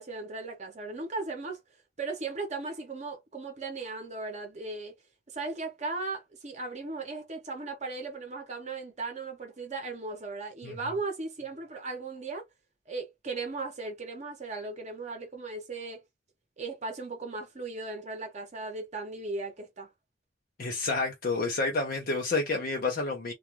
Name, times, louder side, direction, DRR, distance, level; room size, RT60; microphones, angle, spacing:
voice 1, 0.0-1.6 2.0-4.9 5.3-12.4 12.9-16.0 16.6-19.9, right 3 dB, 40° right, 0.8 m, -37 dB
voice 2, 20.6-23.3, left 3 dB, 50° left, 0.5 m, -29 dB
2.3 x 2.2 x 2.9 m
head